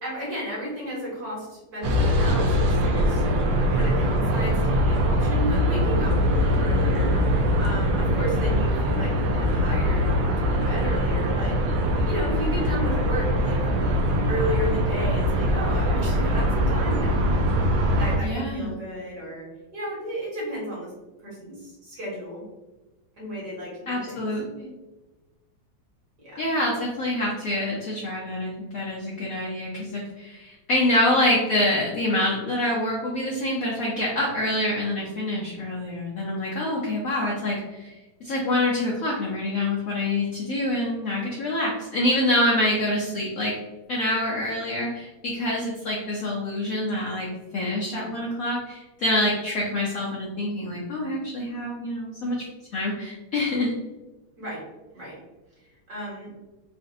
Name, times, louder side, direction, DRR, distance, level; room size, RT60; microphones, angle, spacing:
voice 1, 0.0-3.2 3.7-7.1 7.6-11.6 12.0-13.6 14.3-17.5 17.9-19.5 19.7-20.9 21.2-22.4 23.2-24.3 26.2-26.5 54.4-54.6 54.9-55.2 55.9-56.3, equal, 50° right, -6 dB, 1.8 m, -33 dB
sound 1, 1.8-18.2, equal, 75° right, 1.3 m, -22 dB
voice 2, 18.2-18.7 23.9-24.7 26.4-37.9 38.2-43.5 43.9-52.4 52.7-53.7, left 1 dB, 85° left, -4 dB, 0.7 m, -26 dB
3.8 x 2.5 x 2.6 m, 1.1 s
omnidirectional pair, 2.3 m